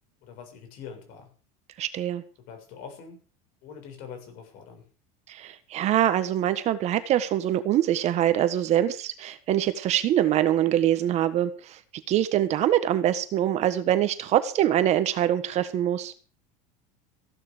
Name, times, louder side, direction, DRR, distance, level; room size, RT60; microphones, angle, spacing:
voice 1, 0.2-1.3 2.4-3.2 3.6-4.9, left 6 dB, 60° left, 5 dB, 7.1 m, -44 dB
voice 2, 1.8-2.2 5.3-11.8 12.1-16.1, right 11 dB, 40° right, 11 dB, 1.5 m, -24 dB
15.5 x 12.0 x 5.1 m, 0.38 s
cardioid pair, 150°, 17 cm